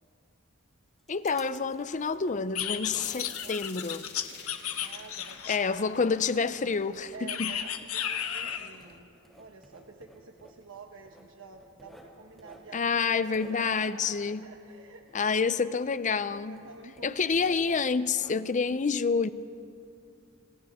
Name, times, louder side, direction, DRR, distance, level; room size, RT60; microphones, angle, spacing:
Writing, 0.6-15.9 16.2-18.7, equal, ahead, 2.6 m, -57 dB
voice 1, 1.1-4.1 5.5-7.5 12.7-14.4 15.1-16.6 17.0-19.3, left 5 dB, 35° left, 14 dB, 0.5 m, -28 dB
sound 1, 2.5-5.8 7.3-8.7, left 9 dB, 85° left, 1.2 m, -34 dB
sound 2, 3.0-9.0, left 7 dB, 55° left, 2.4 m, -50 dB
voice 2, 3.0-4.1 4.8-6.0 7.1-9.1 9.4-15.0 15.5-15.6 16.5-18.5, right 4 dB, 65° right, 3 dB, 1.1 m, -49 dB
29.0 x 27.0 x 3.6 m, 2.6 s
head